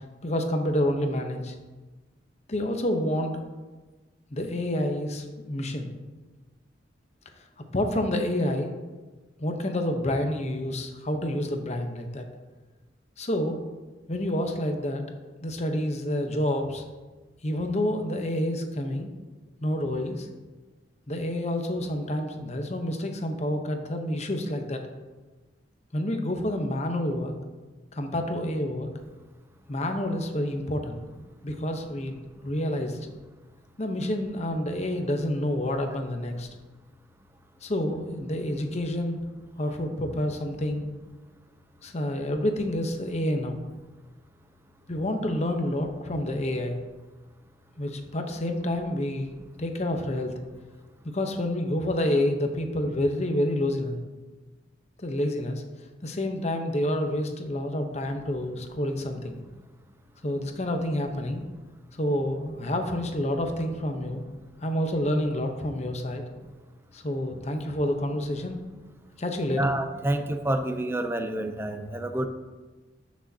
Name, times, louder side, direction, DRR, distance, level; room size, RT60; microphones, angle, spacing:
voice 1, 0.2-1.5 2.5-3.4 4.3-5.9 7.7-8.7 9.4-12.2 13.2-13.6 14.1-15.0 15.4-16.8 17.4-19.1 19.6-20.3 21.1-24.8 25.9-27.3 27.9-28.9 29.7-31.0 31.4-33.0 33.8-36.5 37.6-39.2 39.6-40.8 41.8-43.6 44.9-46.8 47.8-49.3 49.6-50.3 51.1-54.0 55.0-55.6 56.0-59.4 60.2-61.4 62.0-64.2 64.6-66.2 66.9-68.6 69.2-69.7, left 1 dB, 35° left, 5 dB, 0.9 m, -28 dB
voice 2, 69.6-72.3, right 1 dB, 15° right, 7 dB, 0.5 m, -28 dB
13.0 x 6.3 x 2.8 m, 1.2 s
head